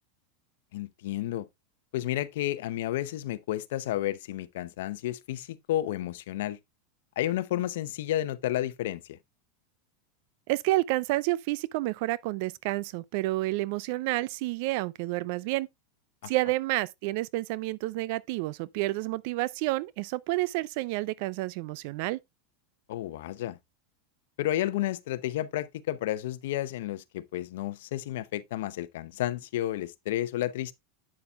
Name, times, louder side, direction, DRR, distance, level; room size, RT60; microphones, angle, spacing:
voice 1, 0.7-1.4 1.9-6.6 7.2-9.2 16.2-16.3 22.9-23.6 24.4-30.7, left 13 dB, 75° left, 0.7 m, -31 dB
voice 2, 10.5-15.7 16.3-22.2, right 19 dB, 60° right, 0.4 m, -29 dB
8.6 x 6.9 x 2.4 m
supercardioid pair, 125°, 0 cm